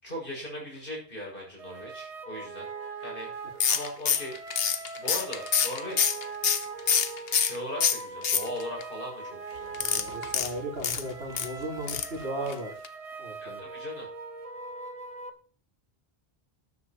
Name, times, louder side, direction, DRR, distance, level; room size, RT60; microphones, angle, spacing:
voice 1, 0.0-2.7 3.0-4.4 4.9-6.1 7.4-10.0 13.4-14.1, left 1 dB, 55° left, -2 dB, 7.0 m, -39 dB
sound 1, 1.6-15.3, right 4 dB, 35° right, 1.1 m, -41 dB
sound 2, 3.6-7.6 7.8-8.8 9.7-11.5 11.9-12.2 12.5-12.6 12.8-12.9, left 7 dB, 70° left, 1.2 m, -26 dB
voice 2, 9.7-12.7 13.2-13.6, right 1 dB, 80° right, -1 dB, 4.3 m, -36 dB
13.0 x 9.8 x 4.5 m, 0.40 s
omnidirectional pair, 1.0 m